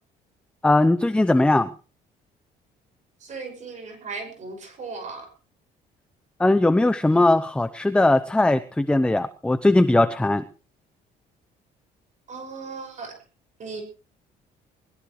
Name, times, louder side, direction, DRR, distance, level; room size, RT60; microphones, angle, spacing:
voice 1, 0.6-1.7 6.4-10.4, left 2 dB, 5° left, 10 dB, 0.7 m, -19 dB
voice 2, 3.2-5.3 7.1-7.3 12.3-13.1 13.6-13.8, right 4 dB, 45° right, 4 dB, 5.9 m, -37 dB
21.0 x 18.0 x 3.2 m, 0.36 s
cardioid pair, 110°, 17 cm